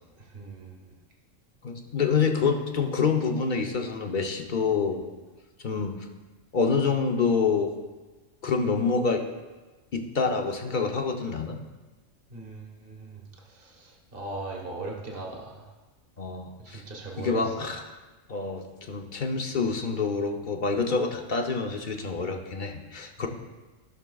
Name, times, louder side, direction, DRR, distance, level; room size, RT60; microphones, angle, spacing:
voice 1, 0.3-0.9 12.3-13.2 13.5-15.7 16.6-17.7, right 2 dB, 45° right, -1 dB, 1.5 m, -39 dB
voice 2, 1.6-5.0 5.6-6.0 6.5-7.7 8.4-9.2 9.9-11.6 16.2-16.8 17.2-17.8 18.3-23.3, left 5 dB, 45° left, 3 dB, 0.8 m, -27 dB
16.0 x 6.1 x 2.3 m, 1.2 s
omnidirectional pair, 1.3 m